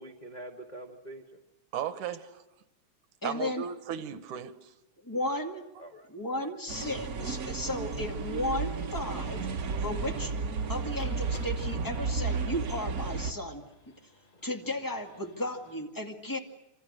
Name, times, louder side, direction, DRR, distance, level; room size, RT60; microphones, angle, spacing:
voice 1, 0.0-1.4 5.8-6.5, right 1 dB, 30° left, 1 dB, 0.8 m, -46 dB
voice 2, 1.7-2.4 3.2-4.7, right 9 dB, 90° right, 11 dB, 2.6 m, -36 dB
voice 3, 3.2-3.7 5.0-5.6 6.1-9.5 9.8-10.3 10.7-13.6 14.4-16.4, left 1 dB, 10° left, 2 dB, 1.7 m, -34 dB
sound 1, 6.7-13.3, right 4 dB, 65° right, 0.9 m, -33 dB
sound 2, 10.8-15.8, left 2 dB, 85° left, 7.2 m, -56 dB
27.5 x 26.5 x 6.5 m, 0.94 s
omnidirectional pair, 3.3 m